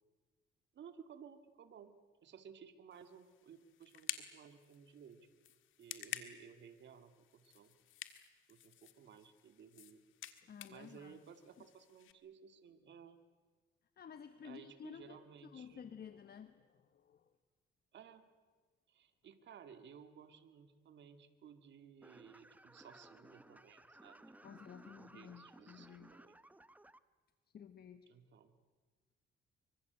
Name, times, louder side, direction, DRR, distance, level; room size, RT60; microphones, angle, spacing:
voice 1, 0.7-2.0 2.2-5.2 5.8-7.8 8.5-10.0 10.7-13.2 14.4-15.9 17.9-18.3 18.9-26.4 28.1-28.5, right 7 dB, 65° right, 9 dB, 2.2 m, -57 dB
sound 1, 2.9-12.1, left 12 dB, 85° left, 1.7 m, -51 dB
voice 2, 10.4-11.2 14.0-17.3 24.4-26.2 27.5-28.1, left 7 dB, 50° left, 10 dB, 1.4 m, -53 dB
sound 2, 22.0-27.0, right 1 dB, 10° right, 1.0 m, -59 dB
25.5 x 24.0 x 8.1 m, 1.4 s
cardioid pair, 90°, 20 cm